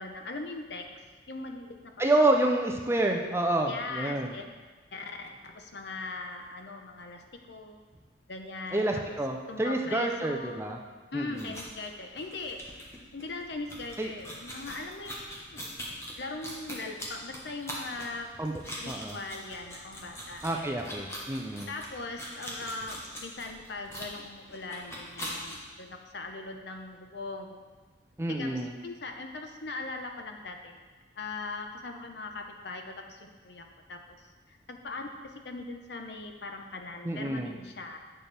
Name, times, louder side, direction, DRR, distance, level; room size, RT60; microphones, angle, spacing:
voice 1, 0.0-1.9 3.7-4.5 4.9-7.8 8.3-9.2 9.5-10.6 11.1-12.6 13.1-15.7 16.2-18.3 18.8-20.8 21.7-27.6 28.3-30.8 31.2-38.0, left 3 dB, 60° left, 4 dB, 0.8 m, -40 dB
voice 2, 2.0-4.3 8.7-10.8 11.1-11.5 14.0-14.1 18.4-18.5 18.9-19.2 20.4-21.7 28.2-28.7 37.0-37.6, right 2 dB, 15° right, 2 dB, 0.5 m, -28 dB
sound 1, 11.3-25.6, equal, 15° left, 1.2 m, -42 dB
8.8 x 6.6 x 3.4 m, 1.4 s
head